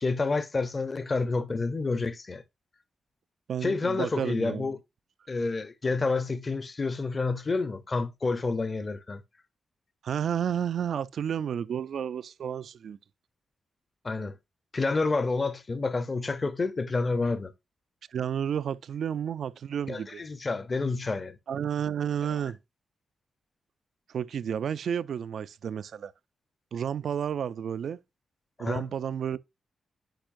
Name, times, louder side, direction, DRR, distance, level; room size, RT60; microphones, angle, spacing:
voice 1, 0.0-2.4 3.6-4.8 5.3-9.2 14.0-14.4 14.7-17.5 19.9-21.4 28.6-28.9, left 3 dB, 30° left, 0.7 m, -29 dB
voice 2, 3.5-4.7 10.0-13.0 18.1-20.2 21.5-22.6 24.1-26.1 26.7-28.0 28.6-29.4, right 8 dB, 65° right, 0.3 m, -31 dB
8.9 x 5.1 x 2.5 m
wide cardioid pair, 135°, 0 cm